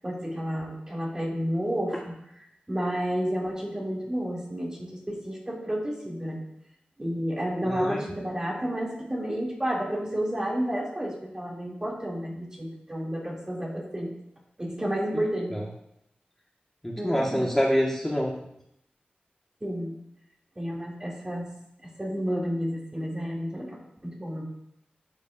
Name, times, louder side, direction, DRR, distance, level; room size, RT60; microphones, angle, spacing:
voice 1, 0.0-2.0 2.7-6.4 7.0-14.1 14.6-15.6 17.0-17.5 19.6-19.9 20.6-21.5 21.8-24.4, equal, 20° right, -3 dB, 2.3 m, -31 dB
voice 2, 7.6-8.0 15.5-15.6 16.8-18.3, equal, 10° left, -3 dB, 1.3 m, -26 dB
11.5 x 8.2 x 2.4 m, 0.78 s
wide cardioid pair, 85°, 3 cm